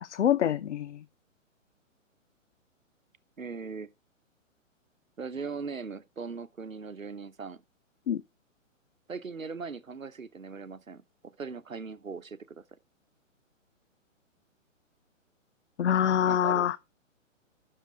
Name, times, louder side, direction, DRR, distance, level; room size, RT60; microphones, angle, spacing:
voice 1, 0.0-1.0 8.1-8.2 15.8-16.8, left 9 dB, 60° left, 0.6 m, -25 dB
voice 2, 3.4-3.9 5.2-7.6 9.1-12.6 16.2-16.7, right 5 dB, 85° right, 1.0 m, -39 dB
10.0 x 6.7 x 4.5 m
figure-of-eight pair, 125°, 39 cm